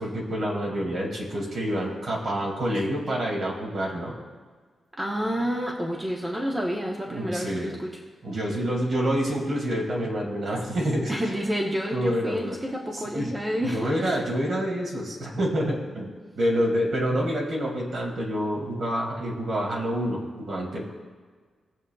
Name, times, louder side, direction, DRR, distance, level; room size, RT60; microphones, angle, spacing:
voice 1, 0.0-4.1 7.1-7.8 8.2-11.2 11.9-12.6 12.9-13.3 13.6-20.9, equal, 55° right, -1 dB, 2.3 m, -27 dB
voice 2, 5.0-7.9 11.1-14.2, equal, 10° right, -1 dB, 0.9 m, -29 dB
19.5 x 7.4 x 2.3 m, 1.5 s
wide cardioid pair, 155°, 0 cm